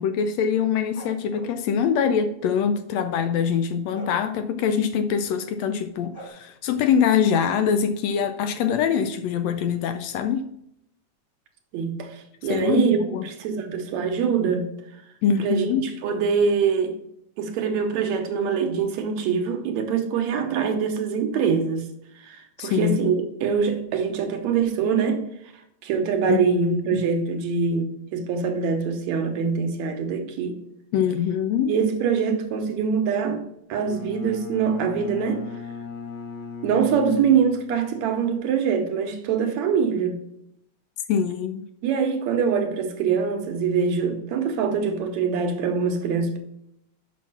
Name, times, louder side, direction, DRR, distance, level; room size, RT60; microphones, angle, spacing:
voice 1, 0.0-10.5 12.5-13.3 15.2-15.9 22.6-23.1 26.3-26.6 26.9-27.1 30.9-31.7 41.1-41.6, left 7 dB, 80° left, 1.6 m, -24 dB
sound 1, 0.9-1.6 3.9-4.2 6.1-6.3, equal, 20° left, 1.0 m, -41 dB
voice 2, 11.7-13.0 13.2-14.7 15.4-16.9 17.4-21.9 22.2-23.1 23.4-25.2 25.8-30.6 31.7-33.4 33.7-35.4 36.6-40.2 41.8-46.4, right 6 dB, 75° right, 2.2 m, -24 dB
Bowed string instrument, 33.7-37.9, left 5 dB, 60° left, 2.0 m, -37 dB
6.3 x 5.8 x 5.5 m
omnidirectional pair, 3.3 m